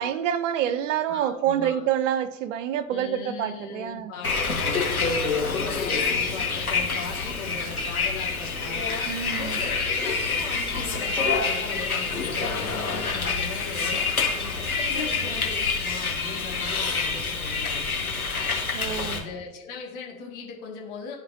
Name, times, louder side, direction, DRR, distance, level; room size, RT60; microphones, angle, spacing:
voice 1, 0.0-4.1 9.0-9.6 18.7-19.2, right 10 dB, 60° right, 0.7 m, -27 dB
voice 2, 1.1-1.9 2.9-4.8 5.2-8.9 9.3-14.0 14.6-17.8 19.1-21.2, left 5 dB, 50° left, 2.1 m, -39 dB
Bus, 4.2-19.2, left 4 dB, 90° left, 1.2 m, -27 dB
13.0 x 4.4 x 2.7 m
figure-of-eight pair, 75°, 42 cm